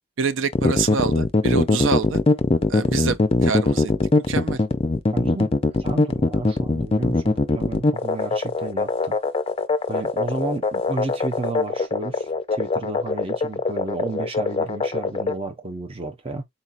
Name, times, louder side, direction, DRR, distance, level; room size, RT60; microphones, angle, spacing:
voice 1, 0.2-2.2 2.7-4.6, right 5 dB, 60° right, 0.5 m, -26 dB
sound 1, 0.5-15.3, left 3 dB, 25° left, 0.4 m, -21 dB
voice 2, 5.1-9.2 9.9-16.4, right 2 dB, 25° right, 0.8 m, -32 dB
4.2 x 4.1 x 2.5 m
head